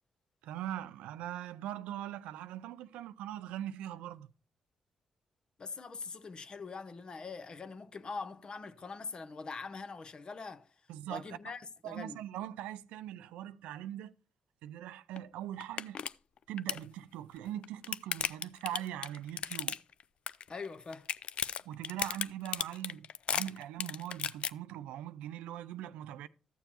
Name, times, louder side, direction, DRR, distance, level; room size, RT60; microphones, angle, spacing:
voice 1, 0.4-4.3 10.9-11.4 11.8-14.1 14.6-16.0 16.5-19.8 21.6-26.3, right 12 dB, 85° right, 0.3 m, -41 dB
voice 2, 5.6-10.7 11.1-12.2 20.5-21.1, left 4 dB, 45° left, 0.8 m, -43 dB
sound 1, 15.2-15.3 15.6-16.1 16.4-16.8 17.5-20.0 20.3-20.7 20.9-24.5, left 8 dB, 65° left, 0.3 m, -35 dB
13.5 x 7.0 x 2.9 m
supercardioid pair, 55°, 2 cm